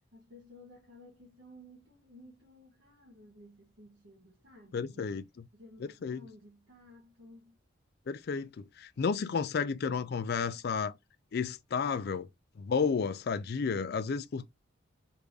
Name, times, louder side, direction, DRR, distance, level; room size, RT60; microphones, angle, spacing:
voice 1, 0.1-5.2 5.5-7.6, left 1 dB, 60° right, 1.0 m, -55 dB
voice 2, 4.7-5.2 5.8-6.3 8.1-10.9 11.3-12.3 12.6-14.5, left 5 dB, 50° left, 0.3 m, -32 dB
3.5 x 2.6 x 3.1 m
head